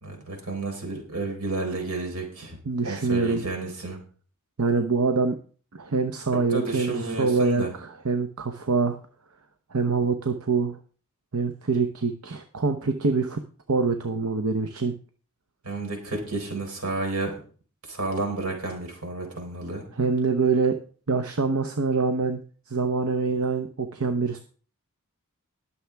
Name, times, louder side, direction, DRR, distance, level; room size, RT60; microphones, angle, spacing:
voice 1, 0.0-2.6 2.8-4.0 6.5-7.7 15.6-17.3 17.9-19.8, right 2 dB, 90° right, 2 dB, 4.2 m, -31 dB
voice 2, 2.7-3.5 4.6-5.4 5.7-9.0 9.7-10.8 11.3-13.4 13.7-14.9 19.9-20.8 21.1-22.4 22.7-24.4, right 4 dB, 70° right, 7 dB, 0.9 m, -25 dB
21.0 x 7.1 x 3.5 m, 0.42 s
head